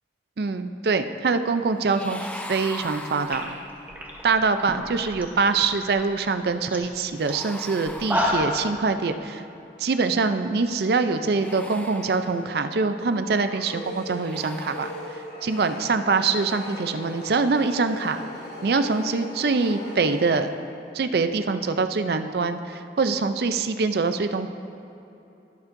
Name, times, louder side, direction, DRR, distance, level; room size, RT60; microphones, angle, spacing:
voice 1, 0.4-3.6 4.2-9.4 9.8-14.9 15.4-18.2 18.6-20.5 20.9-24.5, right 4 dB, 65° right, 9 dB, 0.4 m, -24 dB
sound 1, 1.8-3.9 7.2-8.8 11.2-12.8 14.1-15.5 17.5-17.8, left 1 dB, 5° left, 0.4 m, -40 dB
sound 2, 2.9-3.0 3.3-5.2 5.5-6.0 6.4-6.5 6.7-6.9 7.3-7.4 7.9-8.6, equal, 10° right, 0.9 m, -28 dB
sound 3, 11.8-20.9, left 1 dB, 85° left, 2.3 m, -40 dB
20.0 x 7.2 x 2.6 m, 2.8 s
head